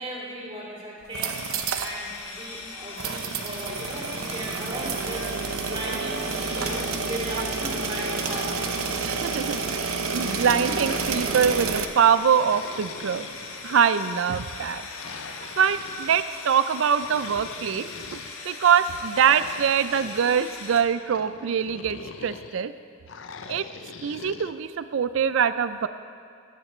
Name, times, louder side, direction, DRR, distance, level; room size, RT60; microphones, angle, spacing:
voice 1, 0.0-1.4 1.7-5.3 5.6-8.7 10.5-10.7, right 1 dB, 25° right, -6 dB, 3.4 m, -36 dB
sound 1, 1.0-2.0 2.3-2.4 3.0-11.9, right 5 dB, 85° right, 0.8 m, -29 dB
sound 2, 1.3-20.8, left 4 dB, 75° left, 1.3 m, -40 dB
sound 3, 6.4-7.6 8.1-9.5 10.1-11.7 12.3-14.0 14.9-16.3 17.0-18.4 19.1-20.4 21.1-22.6 23.1-24.5, left 5 dB, 60° left, 0.5 m, -42 dB
voice 2, 9.0-13.3 13.6-14.9 15.4-18.2 18.4-22.7 23.5-23.6 24.0-25.9, right 7 dB, 65° right, 13 dB, 0.4 m, -24 dB
20.0 x 10.0 x 3.2 m, 2.3 s
head